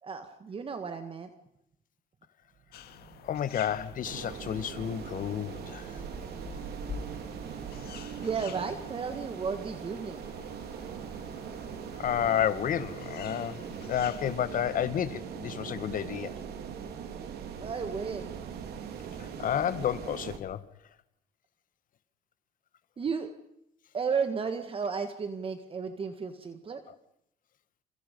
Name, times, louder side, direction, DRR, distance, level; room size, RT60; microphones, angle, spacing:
voice 1, 0.0-1.3 8.2-10.2 17.6-18.3 23.0-23.3 23.9-26.8, right 5 dB, 35° right, 1.7 m, -33 dB
sound 1, 2.5-8.9, right 7 dB, 50° right, 1.7 m, -47 dB
sound 2, 2.7-14.4, left 9 dB, 70° left, 1.9 m, -50 dB
voice 2, 3.2-6.0 11.9-16.4 19.2-20.6, left 10 dB, 55° left, 1.3 m, -31 dB
sound 3, 4.0-20.4, right 7 dB, 70° right, 3.3 m, -41 dB
29.0 x 28.0 x 5.4 m
cardioid pair, 110°, 17 cm